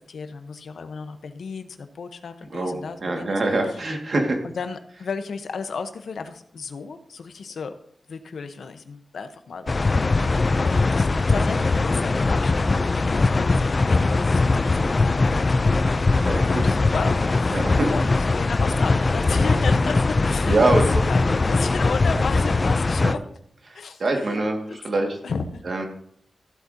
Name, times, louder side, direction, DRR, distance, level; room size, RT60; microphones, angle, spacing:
voice 1, 0.0-3.8 4.5-7.7 8.1-15.7 16.1-20.6 21.1-23.2 23.7-25.6, left 5 dB, 80° left, 8 dB, 0.9 m, -34 dB
voice 2, 2.5-4.4 16.2-16.6 17.5-17.9 20.5-20.9 21.2-21.4 23.0-23.1 23.7-25.2 25.6-25.9, right 2 dB, 50° right, 2 dB, 1.8 m, -24 dB
sound 1, 9.7-23.2, left 3 dB, 35° left, 0.3 m, -21 dB
15.5 x 8.3 x 2.8 m, 0.66 s
wide cardioid pair, 130°, 0 cm